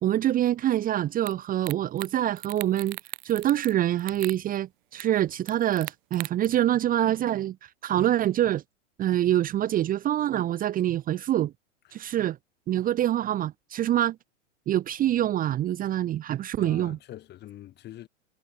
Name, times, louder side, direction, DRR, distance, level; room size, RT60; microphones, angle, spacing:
voice 1, 0.0-3.0 3.2-7.6 7.8-8.6 9.0-11.5 11.9-12.4 12.7-14.2 14.7-17.0, right 12 dB, 20° right, 1.0 m, -25 dB
sound 1, 1.3-1.4 1.6-2.1 2.4-3.7 4.0-4.4 5.0-5.1 5.5-6.5, right 28 dB, 45° right, 3.2 m, -38 dB
voice 2, 16.6-18.1, left 13 dB, 25° left, 1.9 m, -44 dB
hypercardioid pair, 115°, 37 cm